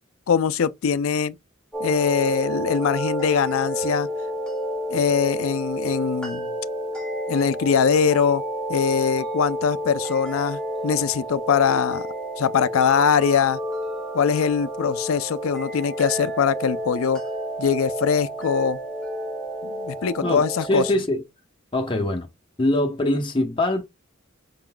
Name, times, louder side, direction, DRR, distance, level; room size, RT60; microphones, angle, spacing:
voice 1, 0.3-1.4 1.8-4.1 4.9-6.5 7.3-8.4 8.7-12.1 12.4-13.6 14.1-17.2 17.6-18.8 19.6-20.9, left 6 dB, 85° left, 0.4 m, -22 dB
sound 1, 1.7-20.9, equal, 5° left, 1.5 m, -30 dB
voice 2, 20.7-21.2 21.7-22.3 22.6-23.8, left 1 dB, 25° left, 0.9 m, -22 dB
5.4 x 3.8 x 2.2 m
head